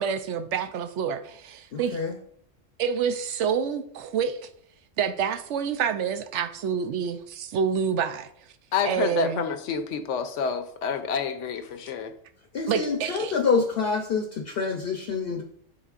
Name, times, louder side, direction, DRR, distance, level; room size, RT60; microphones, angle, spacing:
voice 1, 0.0-2.0 2.8-4.5 5.0-8.3 8.8-9.4 12.7-13.3, right 7 dB, 75° right, 0.9 m, -27 dB
voice 2, 1.7-2.2 12.5-15.4, left 5 dB, 55° left, 0.8 m, -27 dB
voice 3, 8.7-12.1, left 6 dB, 75° left, 1.0 m, -28 dB
9.9 x 4.1 x 2.5 m
omnidirectional pair, 1.3 m